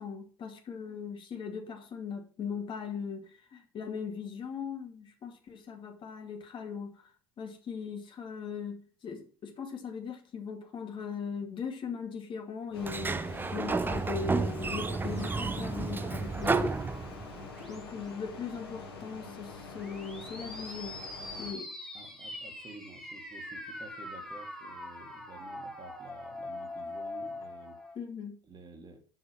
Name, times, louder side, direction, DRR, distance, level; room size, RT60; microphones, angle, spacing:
voice 1, 0.0-7.0 7.4-13.2 13.5-17.2 17.6-21.0 21.4-21.7 28.0-28.4, left 6 dB, 40° left, 3 dB, 2.4 m, -39 dB
sound 1, 12.7-21.5, left 4 dB, 85° left, 2.1 m, -46 dB
Sliding door, 12.8-17.5, right 4 dB, 15° right, 0.7 m, -31 dB
sound 2, 14.7-16.9 17.4-18.1 19.7-28.0, left 2 dB, 5° left, 2.1 m, -43 dB
voice 2, 17.2-18.1 21.9-27.8 28.4-29.0, right 3 dB, 35° right, 4 dB, 2.4 m, -51 dB
7.2 x 6.2 x 5.8 m, 0.41 s
hypercardioid pair, 70°, 13 cm